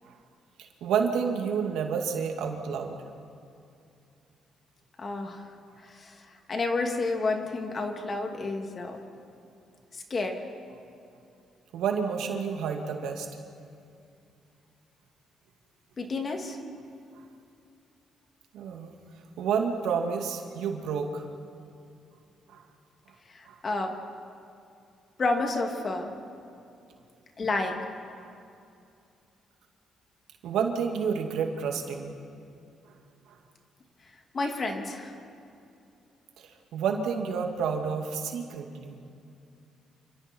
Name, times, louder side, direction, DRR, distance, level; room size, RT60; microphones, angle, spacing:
voice 1, 0.6-3.0 11.7-13.3 18.5-18.9 19.4-21.2 22.5-22.6 23.5-23.6 28.2-28.3 30.4-32.1 36.4-39.0, right 6 dB, 85° right, 3 dB, 2.4 m, -30 dB
voice 2, 5.0-5.5 5.8-9.0 9.9-10.4 16.0-16.6 23.3-23.9 25.2-26.1 27.4-27.8 34.3-35.1, left 3 dB, 40° left, 3 dB, 2.8 m, -30 dB
28.5 x 24.5 x 4.6 m, 2.5 s
cardioid pair, 90°, 0 cm